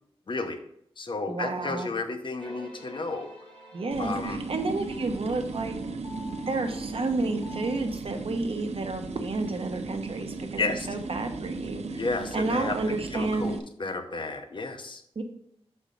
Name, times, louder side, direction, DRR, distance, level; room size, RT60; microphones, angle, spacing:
voice 1, 0.3-0.6 1.0-3.3 4.0-4.4 10.6-10.9 12.0-12.7 13.1-15.0, left 3 dB, 50° left, 7 dB, 0.8 m, -32 dB
voice 2, 1.3-1.9 3.7-5.8 6.4-12.0 12.3-13.6 15.2-15.3, right 3 dB, 60° right, 5 dB, 1.0 m, -31 dB
sound 1, 2.4-7.8, left 1 dB, 10° left, 2.8 m, -49 dB
sound 2, 3.9-13.6, right 3 dB, 85° right, 0.6 m, -36 dB
6.4 x 4.4 x 5.1 m, 0.71 s
wide cardioid pair, 105°, 11 cm